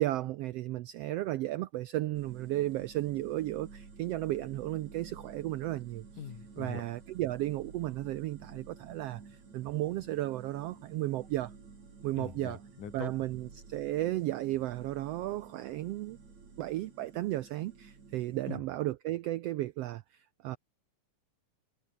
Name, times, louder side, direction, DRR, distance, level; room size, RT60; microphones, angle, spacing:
voice 1, 0.0-6.0 6.6-11.5 12.0-12.6 12.9-16.2 16.6-20.0 20.4-20.6, right 15 dB, 85° right, 1.4 m, -34 dB
sound 1, 2.1-18.6, right 5 dB, 65° right, 6.1 m, -52 dB
voice 2, 6.2-6.8 12.2-13.1 18.5-18.6, left 9 dB, 85° left, 3.9 m, -42 dB
omnidirectional pair, 3.5 m